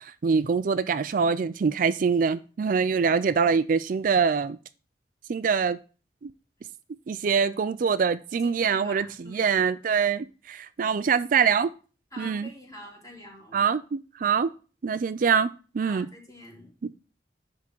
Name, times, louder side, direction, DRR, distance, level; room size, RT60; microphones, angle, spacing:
voice 1, 0.0-4.6 5.3-5.8 6.2-6.3 7.1-11.7 12.2-12.5 13.5-14.5 14.8-16.1, right 6 dB, 50° right, 0.4 m, -24 dB
voice 2, 8.4-9.6 12.1-13.6 15.8-16.7, left 1 dB, 20° left, 3.3 m, -45 dB
10.5 x 3.7 x 7.4 m
head